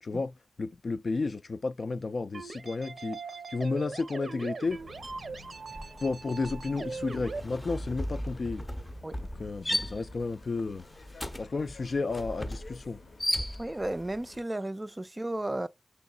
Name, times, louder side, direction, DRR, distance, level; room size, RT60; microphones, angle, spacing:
voice 1, 0.0-3.2 3.5-4.8 6.0-8.6 9.4-10.8 11.4-13.0, left 3 dB, 60° left, 0.3 m, -32 dB
sound 1, 2.3-7.4, right 4 dB, 75° right, 0.6 m, -40 dB
sound 2, 4.7-14.4, left 3 dB, 85° left, 0.8 m, -52 dB
sound 3, 5.0-5.3 5.5-14.0, left 1 dB, 15° left, 0.6 m, -36 dB
voice 2, 13.6-15.7, right 1 dB, 20° right, 0.3 m, -33 dB
6.1 x 2.9 x 2.3 m
wide cardioid pair, 85°, 0 cm